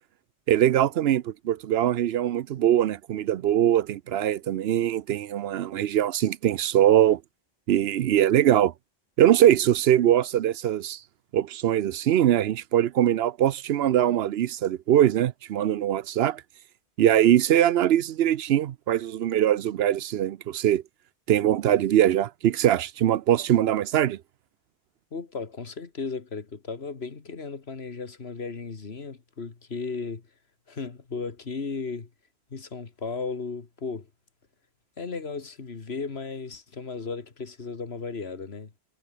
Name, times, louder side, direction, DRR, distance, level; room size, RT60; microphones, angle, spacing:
voice 1, 0.5-7.2 7.7-8.7 9.2-11.0 11.3-16.4 17.0-20.8 21.3-24.2, right 11 dB, 80° right, 0.9 m, -22 dB
voice 2, 25.1-30.2 30.7-32.1 32.5-34.1 35.0-38.7, left 4 dB, 85° left, 2.1 m, -35 dB
omnidirectional pair, 1.0 m